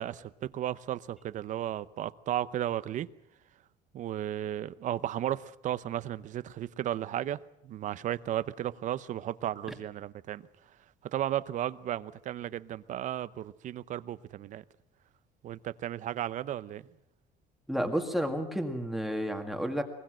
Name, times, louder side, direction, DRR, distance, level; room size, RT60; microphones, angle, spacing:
voice 1, 0.0-3.1 3.9-10.4 11.1-14.6 15.4-16.8, right 12 dB, 50° right, 0.8 m, -34 dB
voice 2, 17.7-19.8, equal, ahead, 1.8 m, -31 dB
23.0 x 20.5 x 7.7 m
cardioid pair, 160°, 17 cm